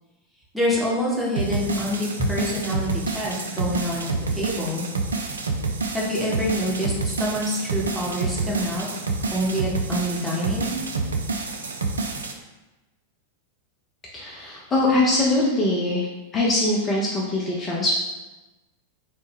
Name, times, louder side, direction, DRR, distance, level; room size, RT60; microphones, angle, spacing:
voice 1, 0.5-4.8 5.9-8.9 9.3-10.8, left 1 dB, 5° right, -5 dB, 0.9 m, -26 dB
sound 1, 1.4-12.3, right 3 dB, 70° right, 0.3 m, -28 dB
voice 2, 14.1-16.1 16.3-17.9, left 2 dB, 25° left, -5 dB, 0.5 m, -22 dB
3.2 x 2.1 x 3.3 m, 1.1 s
figure-of-eight pair, 90°, 0 cm